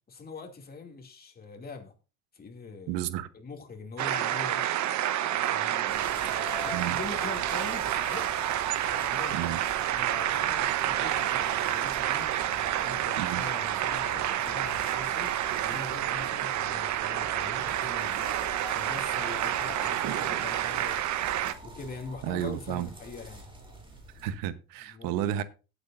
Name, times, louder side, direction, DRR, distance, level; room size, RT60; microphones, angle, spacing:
voice 1, 0.1-1.9 2.3-4.7 5.2-6.3 6.6-8.2 8.9-9.6 9.9-15.3 15.6-18.3 18.7-21.0 21.6-23.4 24.8-25.2, left 4 dB, 25° left, 2.5 m, -43 dB
voice 2, 2.9-3.3 6.7-7.0 9.3-9.6 13.2-13.4 22.2-22.9 24.2-25.4, right 12 dB, 90° right, 1.1 m, -32 dB
sound 1, 4.0-21.5, right 12 dB, 55° right, 1.0 m, -29 dB
sound 2, 5.9-24.3, right 2 dB, 15° right, 3.2 m, -44 dB
18.0 x 8.2 x 2.6 m
cardioid pair, 135°, 34 cm